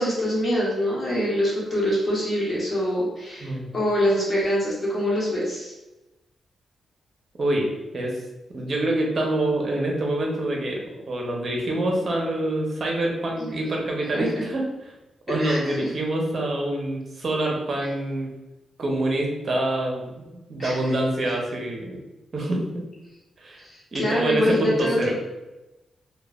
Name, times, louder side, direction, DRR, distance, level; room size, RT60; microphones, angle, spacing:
voice 1, 0.0-5.7 14.1-14.4 15.4-15.9 20.6-20.8 23.6-25.0, equal, 35° left, -6 dB, 1.1 m, -25 dB
voice 2, 7.4-7.7 7.9-8.2 8.5-14.6 15.3-18.3 18.8-20.2 20.5-22.0 22.3-22.8 23.4-23.6 23.9-25.1, right 1 dB, 50° right, 0 dB, 0.7 m, -26 dB
3.0 x 2.2 x 2.4 m, 1.0 s
cardioid pair, 85°, 0 cm